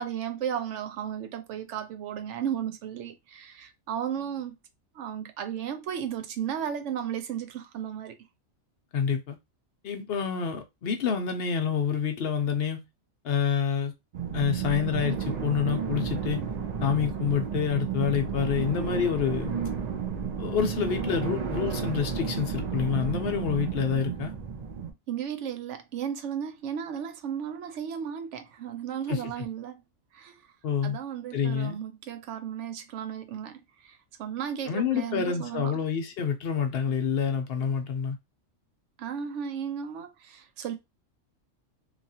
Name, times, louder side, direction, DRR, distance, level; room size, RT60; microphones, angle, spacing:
voice 1, 0.0-4.6 4.9-8.2 25.1-29.8 30.1-30.4 30.8-35.7 39.0-40.7, right 8 dB, 70° right, 0.9 m, -34 dB
voice 2, 8.9-9.4 9.8-12.8 13.2-13.9 14.3-16.4 16.8-19.5 20.4-24.3 29.1-29.2 30.6-31.0 31.3-31.8 34.7-38.2, left 7 dB, 60° left, 0.7 m, -27 dB
sound 1, 14.1-24.9, right 7 dB, 55° right, 0.4 m, -32 dB
2.9 x 2.4 x 2.7 m
omnidirectional pair, 1.3 m